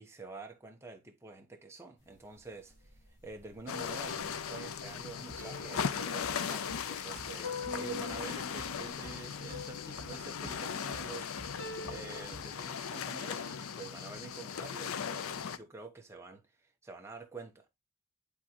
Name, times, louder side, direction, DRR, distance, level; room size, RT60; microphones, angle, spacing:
voice 1, 0.0-17.6, right 4 dB, 10° right, 1.0 m, -48 dB
sound 1, 2.2-12.2, left 3 dB, 55° left, 1.5 m, -46 dB
sound 2, 3.7-15.6, left 7 dB, 75° left, 0.5 m, -38 dB
sound 3, 5.3-12.8, right 2 dB, 30° right, 1.3 m, -53 dB
9.7 x 3.8 x 2.9 m
head